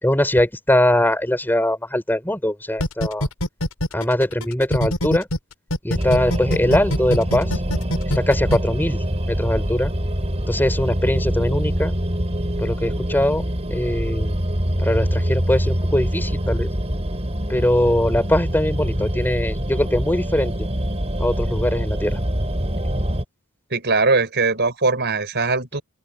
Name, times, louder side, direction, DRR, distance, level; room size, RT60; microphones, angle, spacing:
voice 1, 0.0-3.3 3.9-5.3 5.8-7.5 8.2-9.0 9.3-9.9 10.5-11.9 12.6-13.4 13.7-14.4 14.8-16.7 17.5-20.7 21.2-22.2 22.8-22.9, left 1 dB, 10° left, 5.0 m, -21 dB
sound 1, 2.8-5.4 5.7-8.6, equal, 80° left, 7.1 m, -23 dB
sound 2, 6.0-23.2, equal, 30° right, 3.9 m, -24 dB
voice 2, 23.7-25.8, right 3 dB, 50° right, 5.4 m, -20 dB
open air
head